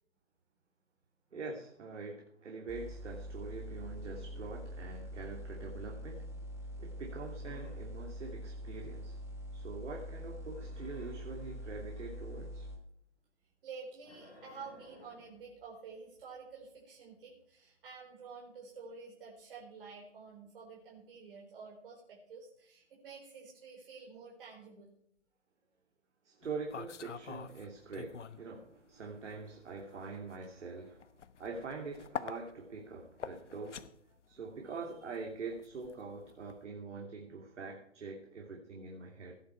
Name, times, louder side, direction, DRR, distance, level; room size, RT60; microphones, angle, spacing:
voice 1, 1.3-6.4 6.8-9.2 9.5-12.7 26.2-31.1 31.4-33.9 34.3-39.3, right 4 dB, 75° right, 0 dB, 3.0 m, -44 dB
sound 1, 2.7-12.8, equal, 10° right, 1.3 m, -44 dB
sound 2, 7.1-7.9 10.1-12.7 14.0-15.4, left 1 dB, 10° left, 4.1 m, -58 dB
voice 2, 13.6-24.9, right 5 dB, 50° right, -3 dB, 4.3 m, -50 dB
sound 3, 26.4-28.5 28.8-36.6, left 7 dB, 80° left, 1.1 m, -46 dB
17.0 x 10.5 x 4.7 m, 0.72 s
hypercardioid pair, 160°, 36 cm